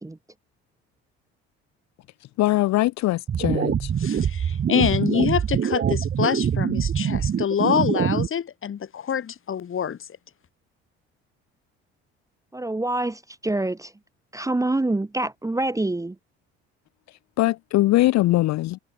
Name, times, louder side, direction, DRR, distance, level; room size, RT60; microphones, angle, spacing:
voice 1, 2.4-3.9 17.4-18.8, left 17 dB, 60° left, 0.9 m, -21 dB
sound 1, 3.3-8.3, right 8 dB, 35° right, 1.2 m, -24 dB
voice 2, 4.0-10.0, left 8 dB, 40° left, 2.0 m, -26 dB
voice 3, 12.5-13.9 14.3-16.2, right 2 dB, 10° right, 1.0 m, -26 dB
hypercardioid pair, 60°, 31 cm